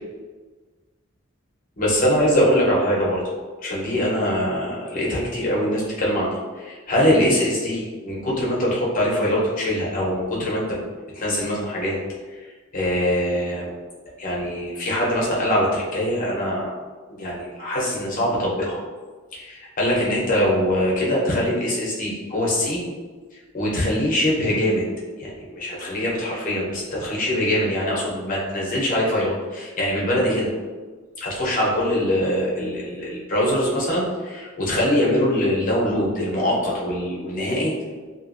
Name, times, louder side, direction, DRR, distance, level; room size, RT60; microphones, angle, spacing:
voice 1, 1.8-3.2 3.6-10.6 11.1-12.0 12.7-13.7 14.2-16.7 17.2-18.8 19.3-22.8 23.5-24.8 25.2-30.5 31.2-37.7, equal, 40° left, -4 dB, 0.7 m, -23 dB
2.7 x 2.5 x 2.5 m, 1.4 s
head